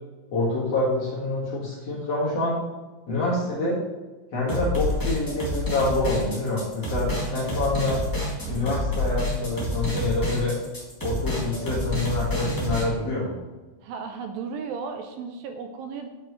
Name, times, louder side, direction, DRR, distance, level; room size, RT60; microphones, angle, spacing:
voice 1, 0.3-2.6 3.1-3.8 4.3-8.1 8.4-10.5 11.0-13.3, left 2 dB, 50° left, -6 dB, 2.4 m, -26 dB
sound 1, 4.5-12.8, left 1 dB, 10° left, 0.8 m, -28 dB
voice 2, 13.8-16.1, right 5 dB, 80° right, 6 dB, 2.2 m, -35 dB
9.5 x 5.9 x 3.1 m, 1.2 s
omnidirectional pair, 4.3 m